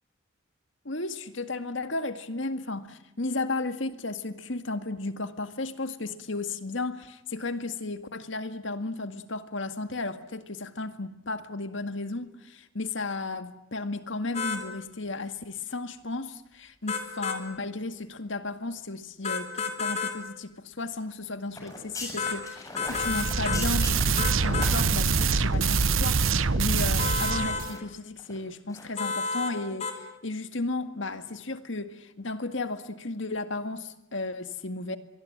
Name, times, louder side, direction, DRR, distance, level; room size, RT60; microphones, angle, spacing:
voice 1, 0.9-35.0, left 2 dB, 70° left, 2.0 m, -34 dB
sound 1, 14.3-14.6 16.9-17.4 19.2-20.2 22.2-22.4 22.8-23.7 24.2-24.7 27.0-27.6 29.0-29.5 29.8-30.0, left 4 dB, 35° left, 3.4 m, -30 dB
sound 2, 21.5-26.2 26.5-26.6 27.1-27.8 28.2-28.4 28.7-28.9 29.2-29.3, left 2 dB, 15° left, 7.5 m, -40 dB
sound 3, 22.9-27.8, right 4 dB, 85° right, 1.0 m, -25 dB
26.0 x 23.0 x 8.9 m
head